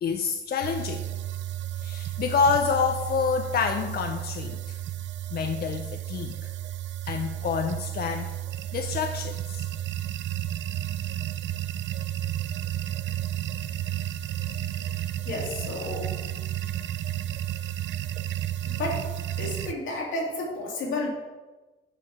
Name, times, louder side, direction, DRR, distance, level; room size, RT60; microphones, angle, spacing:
voice 1, 0.0-1.1 1.8-4.8 5.3-6.5 7.1-8.3 8.7-9.6, left 5 dB, 50° left, 5 dB, 0.6 m, -27 dB
sound 1, 0.6-19.7, right 12 dB, 65° right, 0.4 m, -32 dB
voice 2, 15.2-16.1 18.6-21.1, left 2 dB, 75° left, -2 dB, 2.4 m, -32 dB
8.8 x 4.5 x 4.8 m, 1.2 s
cardioid pair, 90°, 20 cm